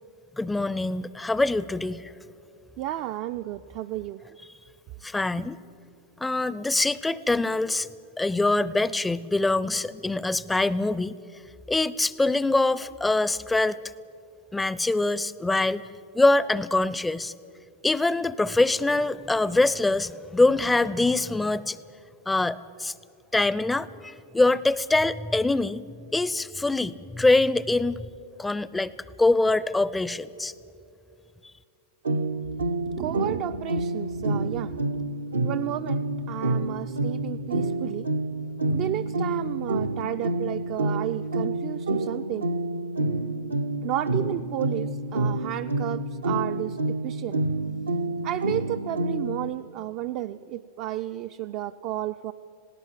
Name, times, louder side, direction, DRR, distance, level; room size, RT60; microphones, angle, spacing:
voice 1, 0.4-2.0 5.0-5.6 6.2-7.9 8.2-11.1 11.7-13.8 14.5-15.8 16.1-17.3 17.8-21.8 22.3-22.9 23.3-25.8 26.1-28.1 28.4-28.9 29.2-30.5, left 2 dB, 10° left, 19 dB, 0.5 m, -24 dB
voice 2, 2.8-4.3 5.4-5.5 32.9-34.8 35.4-38.1 38.7-42.5 43.8-47.4 48.2-52.3, right 13 dB, 45° right, 8 dB, 0.4 m, -32 dB
sound 1, 32.0-49.5, right 2 dB, 75° right, 0.7 m, -28 dB
19.5 x 17.5 x 7.6 m, 2.5 s
figure-of-eight pair, 90°, 0 cm